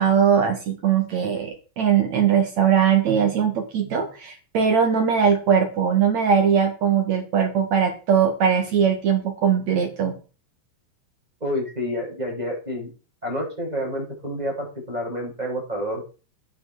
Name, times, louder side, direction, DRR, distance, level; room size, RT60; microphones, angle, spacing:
voice 1, 0.0-10.1, right 7 dB, 60° right, 5 dB, 1.8 m, -20 dB
voice 2, 11.4-12.9 13.2-16.0, equal, 5° right, -2 dB, 7.6 m, -29 dB
11.0 x 11.0 x 4.8 m, 0.35 s
omnidirectional pair, 5.9 m